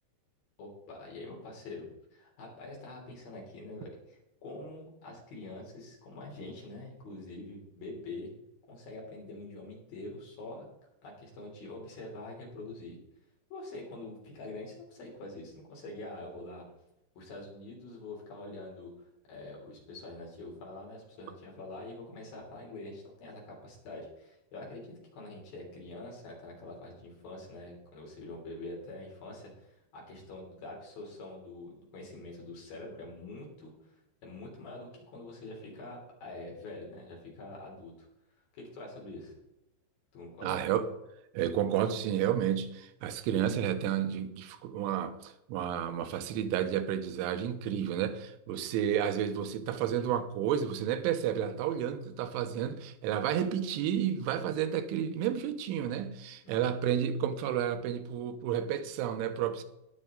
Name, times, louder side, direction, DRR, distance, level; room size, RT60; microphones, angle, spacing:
voice 1, 0.6-8.3 8.7-10.7 11.0-13.0 13.5-16.6 17.2-18.9 19.3-38.1 38.5-39.3 40.1-40.6 56.4-56.8, left 2 dB, 50° left, 4.7 m, -45 dB
voice 2, 40.4-40.9 41.3-59.6, right 9 dB, 85° right, 3.3 m, -31 dB
19.0 x 6.4 x 3.8 m
omnidirectional pair, 5.4 m